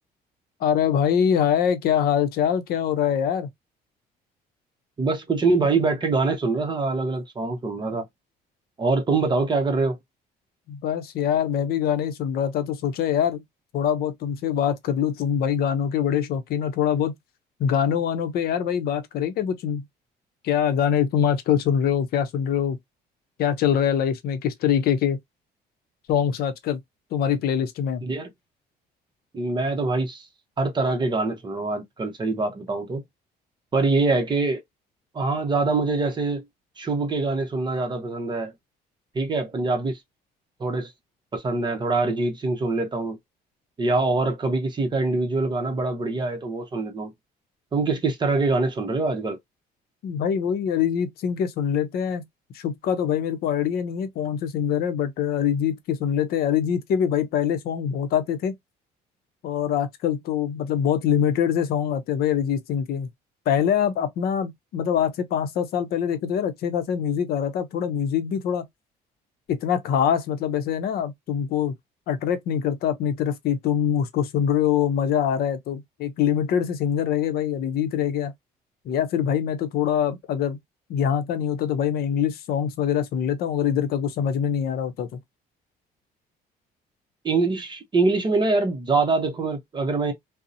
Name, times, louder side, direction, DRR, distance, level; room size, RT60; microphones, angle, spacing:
voice 1, 0.6-3.5 10.7-13.4 13.7-17.1 17.6-19.8 20.4-22.8 23.4-25.2 26.1-26.8 27.1-28.0 50.0-52.2 52.5-58.5 59.4-63.1 63.5-68.7 69.5-71.7 72.1-78.3 78.8-80.6 80.9-85.2, left 8 dB, 65° left, 0.6 m, -24 dB
voice 2, 5.0-8.1 8.8-10.0 28.0-28.3 29.3-30.3 30.6-33.0 33.7-34.6 35.1-36.4 36.8-38.5 39.1-40.0 40.6-40.9 41.3-43.2 43.8-47.1 47.7-49.4 87.2-90.1, right 3 dB, 25° right, 0.6 m, -24 dB
2.6 x 2.0 x 2.5 m
cardioid pair, 110°, 17 cm